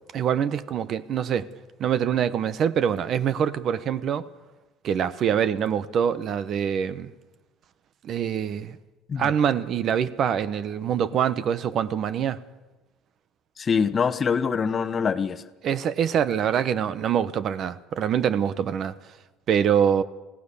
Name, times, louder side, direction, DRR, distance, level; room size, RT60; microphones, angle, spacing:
voice 1, 0.1-1.5 1.8-4.3 4.8-7.1 8.0-8.8 9.2-12.4 15.6-19.0 19.5-20.0, right 8 dB, 50° right, 1.0 m, -24 dB
voice 2, 13.6-15.4, left 6 dB, 30° left, 1.1 m, -24 dB
27.0 x 17.0 x 7.0 m
cardioid pair, 125°, 0 cm